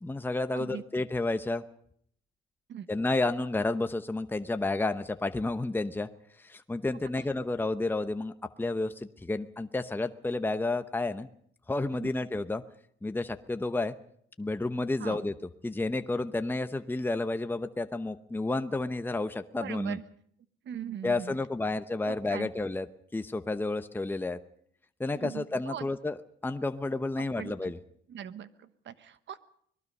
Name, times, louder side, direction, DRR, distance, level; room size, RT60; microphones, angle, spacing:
voice 1, 0.0-1.6 2.9-6.1 6.4-8.3 8.6-11.3 11.7-12.6 13.0-13.9 14.4-15.3 15.6-20.0 21.0-22.9 23.1-24.4 25.0-27.8, left 2 dB, 10° left, 9 dB, 0.9 m, -31 dB
voice 2, 19.5-20.0 20.6-21.4 22.0-22.5 25.1-25.8 27.2-27.7 28.1-29.4, right 9 dB, 65° right, 13 dB, 1.3 m, -40 dB
25.0 x 19.0 x 5.5 m, 0.65 s
cardioid pair, 90°, 20 cm